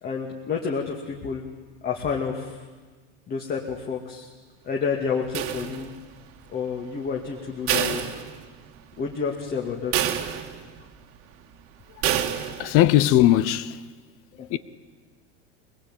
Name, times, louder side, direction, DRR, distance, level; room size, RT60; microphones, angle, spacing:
voice 1, 0.0-1.4 1.8-2.6 3.3-4.3 4.6-5.9 6.5-8.2 9.0-10.0 14.4-14.5, left 5 dB, 30° left, 2.3 m, -29 dB
sound 1, 5.3-6.2 7.7-8.8 9.2-9.3 9.9-10.8 12.0-12.8, right 11 dB, 45° right, 1.9 m, -27 dB
voice 2, 12.6-13.8 14.5-14.6, left 13 dB, 45° left, 0.9 m, -19 dB
23.0 x 20.5 x 9.1 m
supercardioid pair, 145°, 31 cm